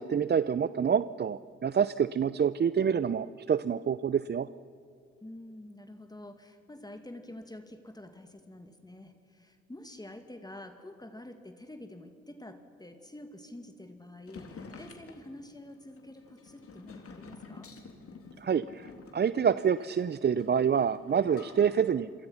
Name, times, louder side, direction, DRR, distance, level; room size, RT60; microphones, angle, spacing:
voice 1, 0.0-4.5 18.4-22.1, right 7 dB, 35° right, 16 dB, 0.6 m, -27 dB
voice 2, 5.2-17.7, left 1 dB, 15° left, 7 dB, 2.4 m, -47 dB
sound 1, 14.3-21.7, left 4 dB, 50° left, 3.8 m, -49 dB
28.5 x 23.0 x 5.8 m, 2.5 s
hypercardioid pair, 50°, 29 cm